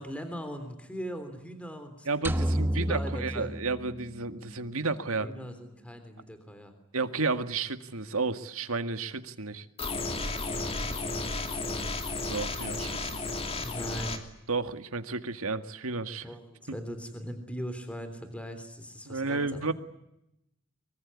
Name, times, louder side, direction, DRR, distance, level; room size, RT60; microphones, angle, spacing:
voice 1, 0.0-2.5 2.8-3.5 5.2-6.7 10.5-12.0 13.4-14.2 16.2-19.6, equal, 5° left, 9 dB, 3.4 m, -40 dB
voice 2, 2.1-5.3 6.9-9.7 12.3-13.1 14.5-16.3 16.7-16.8 19.1-19.7, right 3 dB, 80° right, 9 dB, 1.9 m, -32 dB
sound 1, 2.2-4.5, right 1 dB, 10° right, 1.0 m, -31 dB
sound 2, 9.8-14.2, left 3 dB, 25° left, 2.9 m, -33 dB
24.0 x 24.0 x 9.7 m, 0.85 s
head